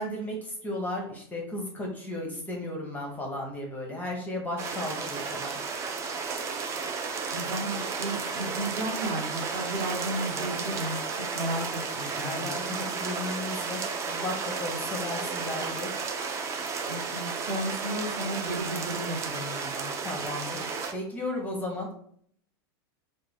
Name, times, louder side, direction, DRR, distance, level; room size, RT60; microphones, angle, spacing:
voice 1, 0.0-5.6 12.2-15.9 20.0-21.9, left 1 dB, 10° left, 0 dB, 0.7 m, -35 dB
sound 1, 4.6-20.9, right 5 dB, 20° right, 0.4 m, -33 dB
voice 2, 7.3-11.0 11.3-12.6 16.9-19.9, right 1 dB, 45° right, 1 dB, 1.0 m, -34 dB
3.5 x 2.2 x 3.3 m, 0.62 s
supercardioid pair, 145°, 13 cm